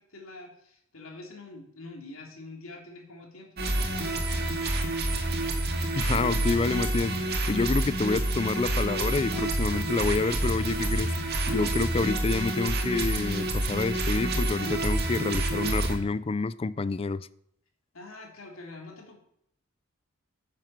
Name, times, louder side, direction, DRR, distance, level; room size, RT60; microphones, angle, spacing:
voice 1, 0.0-4.4 17.9-19.2, left 2 dB, 80° left, 3.0 m, -45 dB
sound 1, 3.6-16.0, right 1 dB, 50° right, 2.0 m, -28 dB
voice 2, 6.0-11.1 11.5-17.3, left 3 dB, 25° left, 0.4 m, -28 dB
10.0 x 7.5 x 7.3 m
head